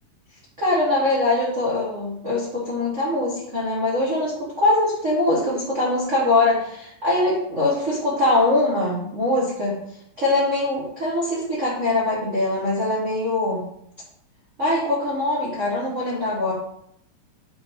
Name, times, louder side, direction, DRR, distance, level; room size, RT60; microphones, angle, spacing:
voice 1, 0.6-9.8 10.2-13.6 14.6-16.5, left 2 dB, 40° right, -6 dB, 1.1 m, -22 dB
7.7 x 4.1 x 4.6 m, 0.72 s
omnidirectional pair, 4.0 m